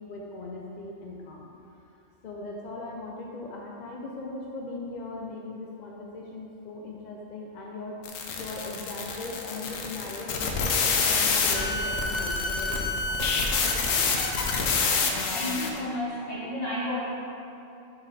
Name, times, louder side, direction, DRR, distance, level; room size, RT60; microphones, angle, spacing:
voice 1, 0.0-1.5 2.2-8.0 8.4-14.2, left 2 dB, 55° left, -2 dB, 0.5 m, -39 dB
sound 1, 8.1-15.8, left 4 dB, 85° left, 1.1 m, -27 dB
voice 2, 15.2-17.0, left 1 dB, 30° left, -9 dB, 1.7 m, -32 dB
6.6 x 4.2 x 4.0 m, 2.8 s
omnidirectional pair, 1.3 m